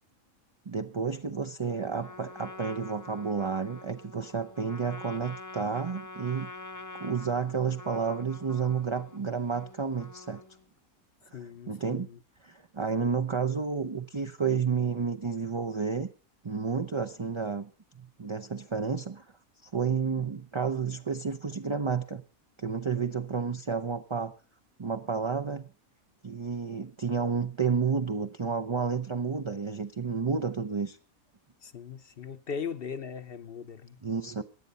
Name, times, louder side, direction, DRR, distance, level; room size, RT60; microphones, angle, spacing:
voice 1, 0.7-6.5 6.9-10.4 11.3-11.4 11.7-12.1 12.4-16.1 16.4-19.2 19.6-22.2 22.6-24.3 24.8-25.7 26.2-31.0 34.0-34.4, right 5 dB, 35° right, 0.5 m, -31 dB
Trumpet, 2.0-10.7, left 3 dB, 15° left, 0.7 m, -46 dB
voice 2, 11.3-12.2 13.0-13.2 31.6-34.0, left 6 dB, 50° left, 1.0 m, -39 dB
17.5 x 10.5 x 5.4 m
omnidirectional pair, 1.5 m